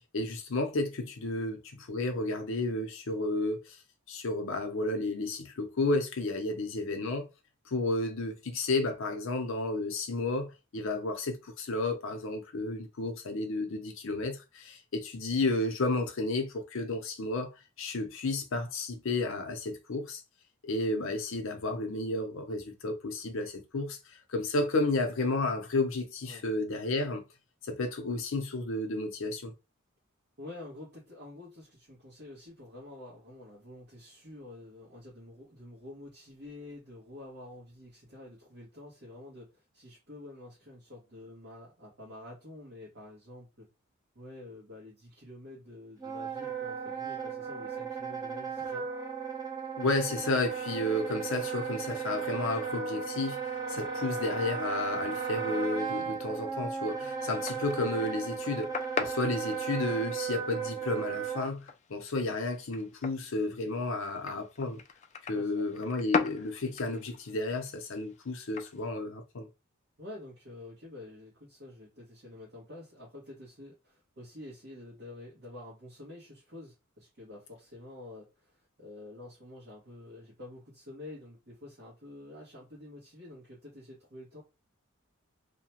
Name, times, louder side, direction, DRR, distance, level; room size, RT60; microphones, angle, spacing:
voice 1, 0.1-3.8 4.1-7.3 7.7-17.5 17.8-20.2 20.6-27.2 27.6-29.5 49.8-64.8 65.2-69.5, left 2 dB, 65° left, 0.7 m, -32 dB
voice 2, 30.4-43.7 44.1-48.9 65.3-65.7 70.0-84.4, left 2 dB, 50° right, 1.1 m, -48 dB
Wind instrument woodwind instrument, 46.0-61.5, right 6 dB, 15° right, 0.6 m, -35 dB
sound 1, 56.9-68.9, left 6 dB, 35° left, 0.3 m, -41 dB
2.8 x 2.2 x 2.9 m
head